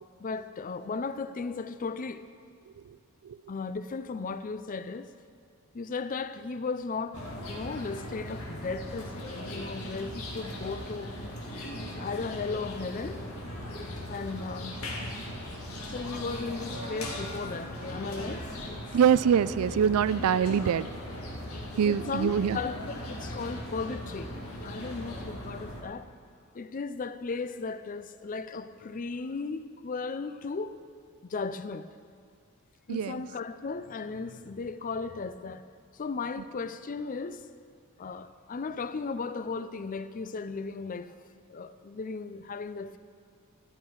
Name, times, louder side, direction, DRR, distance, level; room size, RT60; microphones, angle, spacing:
voice 1, 0.2-2.2 3.5-5.1 5.7-7.2 7.5-11.1 12.0-13.2 14.1-14.8 15.9-18.8 20.5-20.6 21.9-22.8 23.1-24.3 24.6-26.1 26.5-30.7 31.2-31.9 32.9-35.6 36.0-37.4 38.0-41.1 41.5-43.0, left 4 dB, 40° left, 13 dB, 0.4 m, -36 dB
sound 1, 7.1-25.8, left 1 dB, 90° left, 1.8 m, -39 dB
voice 2, 18.9-20.9 21.8-22.6 32.9-33.2, right 8 dB, 85° right, 17 dB, 0.4 m, -24 dB
13.5 x 10.5 x 4.7 m, 2.2 s
head